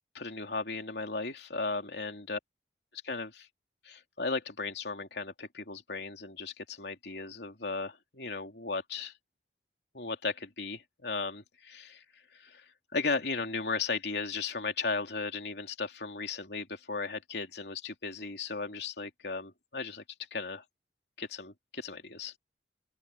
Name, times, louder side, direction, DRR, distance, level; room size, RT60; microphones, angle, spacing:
voice 1, 0.1-2.4 3.0-3.5 3.8-9.1 9.9-12.0 12.3-12.6 12.9-20.0 20.3-20.6 21.2-22.3, left 4 dB, 80° left, 2.9 m, -36 dB
open air
head